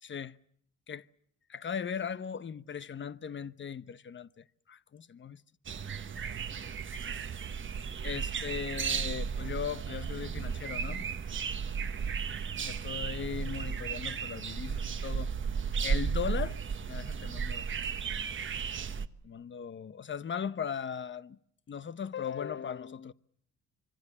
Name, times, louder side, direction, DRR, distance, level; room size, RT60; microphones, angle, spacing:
voice 1, 0.0-0.4 0.9-1.0 1.5-5.4 8.0-11.1 12.7-15.3 15.8-16.6 16.9-17.7 19.2-21.4 21.7-23.1, left 7 dB, 40° left, 1.0 m, -38 dB
sound 1, 5.7-19.1, right 6 dB, 40° right, 1.2 m, -34 dB
26.0 x 24.5 x 7.0 m
cardioid pair, 90°, 30 cm